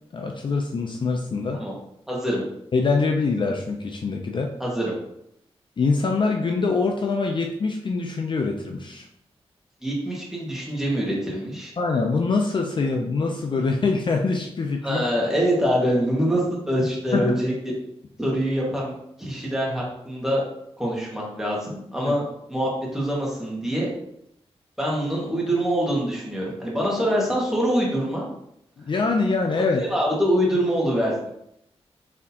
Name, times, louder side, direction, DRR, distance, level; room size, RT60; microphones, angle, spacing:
voice 1, 0.1-1.6 2.7-4.5 5.8-9.1 11.8-15.0 17.1-17.3 22.0-22.2 28.8-29.8, left 4 dB, 50° left, 2 dB, 0.5 m, -24 dB
voice 2, 2.1-2.4 4.6-4.9 9.8-11.7 14.8-17.5 18.2-20.4 20.8-22.2 22.5-23.9 24.8-28.2 29.8-31.3, equal, 5° right, -4 dB, 1.6 m, -24 dB
4.1 x 3.6 x 2.8 m, 0.77 s
cardioid pair, 75°, 11 cm